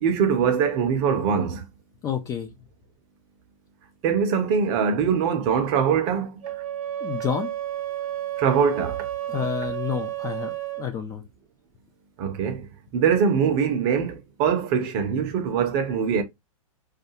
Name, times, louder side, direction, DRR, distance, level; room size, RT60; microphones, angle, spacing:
voice 1, 0.0-1.6 4.0-6.3 8.4-9.0 12.2-12.7 12.9-16.2, right 7 dB, 40° right, 0.6 m, -22 dB
voice 2, 2.0-2.5 7.0-7.5 9.3-11.2, left 8 dB, 20° left, 0.3 m, -29 dB
Wind instrument woodwind instrument, 6.4-10.9, right 12 dB, 75° right, 0.7 m, -31 dB
2.4 x 2.3 x 2.7 m
hypercardioid pair, 115°, 18 cm